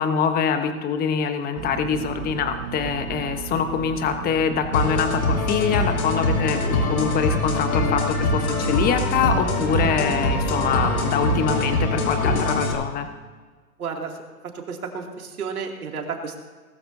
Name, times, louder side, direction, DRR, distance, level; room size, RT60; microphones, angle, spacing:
voice 1, 0.0-13.1, left 7 dB, 20° left, 7 dB, 1.2 m, -24 dB
sound 1, 1.6-12.1, right 8 dB, 40° right, 0.9 m, -34 dB
sound 2, 4.7-12.7, left 2 dB, 70° left, 3.3 m, -23 dB
voice 2, 13.8-14.1 14.5-16.4, right 5 dB, 75° right, 2 dB, 2.8 m, -31 dB
19.5 x 13.5 x 2.8 m, 1.4 s
hypercardioid pair, 130°, 44 cm